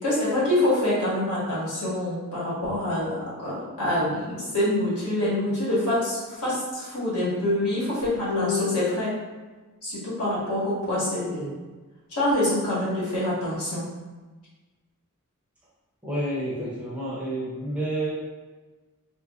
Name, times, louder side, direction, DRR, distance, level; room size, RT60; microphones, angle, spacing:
voice 1, 0.0-9.1 9.8-11.6 12.1-13.9, left 1 dB, 70° left, -9 dB, 1.3 m, -26 dB
voice 2, 16.0-18.1, right 1 dB, 5° right, -7 dB, 0.5 m, -29 dB
3.1 x 2.4 x 2.3 m, 1.3 s
head